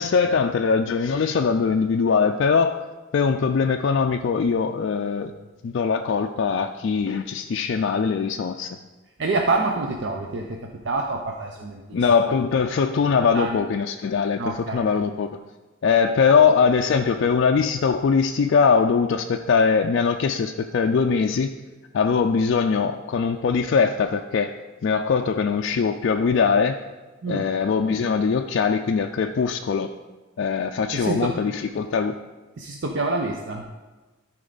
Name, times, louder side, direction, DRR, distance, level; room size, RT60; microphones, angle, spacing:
voice 1, 0.0-2.8 3.1-5.3 5.6-8.7 11.9-15.4 15.8-21.5 21.9-24.5 24.8-26.8 27.3-29.9 30.4-32.1, left 5 dB, 60° left, 4 dB, 0.3 m, -21 dB
voice 2, 9.2-10.6 10.8-12.0 13.3-13.6 14.4-14.9 27.2-27.4 30.9-31.3 32.6-33.6, right 3 dB, 60° right, 2 dB, 0.6 m, -26 dB
13.0 x 4.5 x 3.9 m, 1.2 s
head